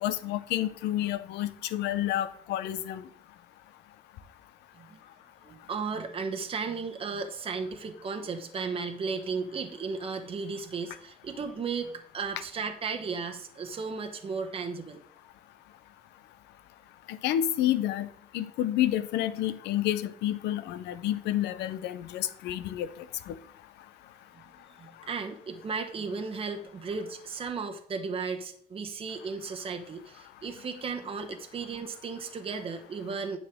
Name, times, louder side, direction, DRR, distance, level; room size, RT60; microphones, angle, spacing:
voice 1, 0.0-3.0 17.1-18.1 18.3-22.9 23.3-23.4, left 12 dB, 85° left, 13 dB, 0.7 m, -29 dB
voice 2, 5.4-15.0 24.7-33.4, right 5 dB, 35° right, 4 dB, 1.0 m, -35 dB
9.6 x 6.6 x 3.6 m, 0.63 s
cardioid pair, 110°, 17 cm